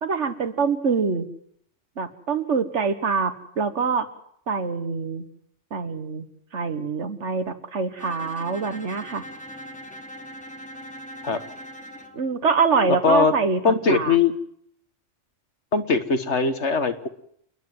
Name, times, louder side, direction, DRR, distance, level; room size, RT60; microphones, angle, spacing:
voice 1, 0.0-1.3 2.0-4.1 4.5-5.2 5.7-6.3 6.5-9.2 12.1-14.2, right 5 dB, 70° right, 10 dB, 1.8 m, -25 dB
Bowed string instrument, 8.0-12.2, equal, 5° left, 1.7 m, -40 dB
voice 2, 12.9-13.3 13.6-14.3 15.7-17.1, left 5 dB, 65° left, 9 dB, 1.8 m, -20 dB
29.0 x 10.5 x 9.3 m, 0.68 s
omnidirectional pair, 1.3 m